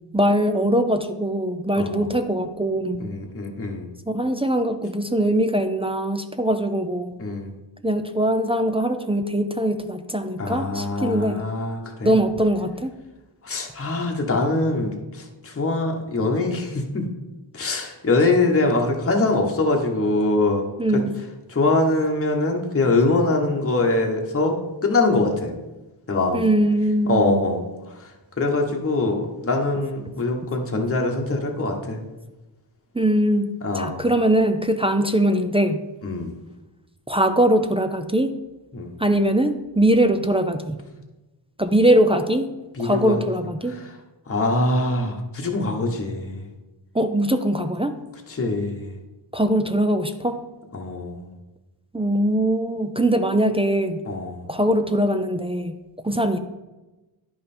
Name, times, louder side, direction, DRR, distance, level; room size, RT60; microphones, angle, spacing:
voice 1, 0.1-3.1 4.1-7.1 7.8-11.5 12.0-12.9 20.8-21.2 26.3-27.5 32.9-35.8 37.1-38.4 39.0-40.8 41.6-42.5 42.8-43.8 46.9-47.9 49.3-50.4 51.9-54.0 54.5-55.8 56.0-56.4, right 1 dB, 15° right, 6 dB, 0.4 m, -21 dB
voice 2, 1.8-2.1 3.0-3.9 7.2-7.5 10.4-12.1 13.4-17.1 17.5-20.7 20.9-21.0 21.5-25.5 26.1-26.5 27.1-27.6 28.0-28.1 28.4-32.0 33.6-34.0 36.0-36.3 38.7-38.9 42.8-43.2 43.7-43.8 44.3-46.4 48.3-48.9 50.7-51.3 54.1-54.5, left 2 dB, 30° left, 1 dB, 1.1 m, -23 dB
10.5 x 5.5 x 4.3 m, 1.1 s
wide cardioid pair, 115°, 46 cm